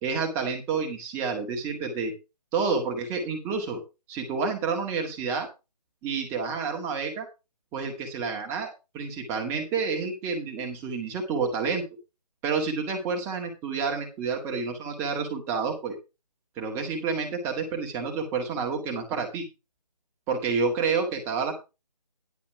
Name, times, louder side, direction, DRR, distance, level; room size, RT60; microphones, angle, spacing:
voice 1, 0.0-2.1 2.5-3.8 4.1-5.5 6.0-7.3 7.7-11.8 12.4-16.0 16.6-19.4 20.3-21.5, right 5 dB, 10° right, 3 dB, 2.0 m, -29 dB
11.0 x 5.6 x 5.8 m, 0.27 s
figure-of-eight pair, 155°, 21 cm